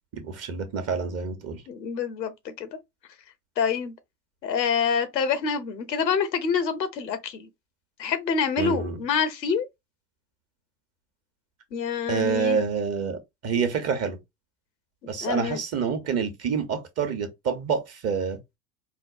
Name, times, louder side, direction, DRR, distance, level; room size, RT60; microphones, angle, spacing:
voice 1, 0.1-1.6 8.6-9.0 12.1-14.2 15.1-18.4, right 5 dB, 30° right, 0.9 m, -27 dB
voice 2, 1.7-2.7 3.6-3.9 4.4-7.5 8.0-9.7 11.7-12.6 15.2-15.6, left 6 dB, 85° left, 0.8 m, -26 dB
4.4 x 2.1 x 2.4 m
hypercardioid pair, 80°, 49 cm